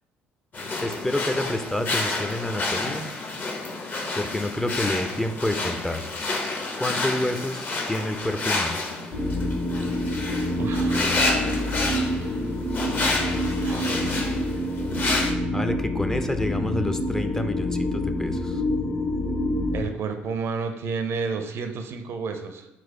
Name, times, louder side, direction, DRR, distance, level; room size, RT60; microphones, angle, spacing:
sound 1, 0.5-15.3, left 2 dB, 40° left, 0.7 m, -29 dB
voice 1, 0.8-3.1 4.2-6.2 6.8-8.8 15.5-18.6, left 1 dB, 10° left, 7 dB, 0.4 m, -28 dB
sound 2, 9.1-19.8, left 1 dB, 60° left, 1.1 m, -27 dB
voice 2, 10.6-11.7 12.0-12.4 13.6-14.1 19.7-22.7, right 5 dB, 60° right, 7 dB, 0.5 m, -32 dB
4.1 x 2.4 x 4.7 m, 0.90 s
supercardioid pair, 65°, 5 cm